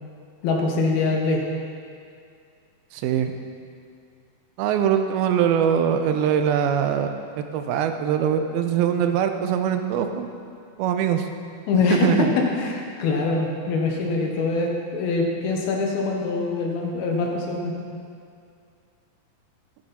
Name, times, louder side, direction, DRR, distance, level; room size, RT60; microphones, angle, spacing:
voice 1, 0.4-1.4 11.7-17.7, left 3 dB, 90° left, 0 dB, 3.2 m, -23 dB
voice 2, 2.9-3.4 4.6-10.3 10.8-11.3 11.9-12.3, right 8 dB, 90° right, 7 dB, 2.6 m, -22 dB
13.5 x 9.7 x 4.3 m, 2.3 s
omnidirectional pair, 4.2 m